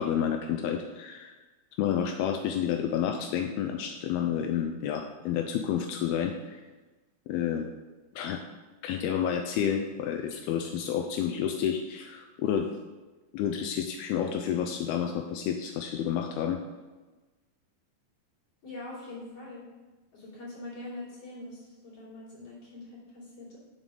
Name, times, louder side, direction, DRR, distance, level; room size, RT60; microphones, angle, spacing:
voice 1, 0.0-1.3 1.8-6.6 7.3-7.7 8.2-8.4 8.8-12.7 13.3-16.6, left 8 dB, 85° left, 4 dB, 2.5 m, -30 dB
voice 2, 18.6-19.6 20.1-23.6, left 2 dB, 40° left, -7 dB, 4.0 m, -43 dB
7.3 x 6.5 x 5.3 m, 1.2 s
omnidirectional pair, 4.4 m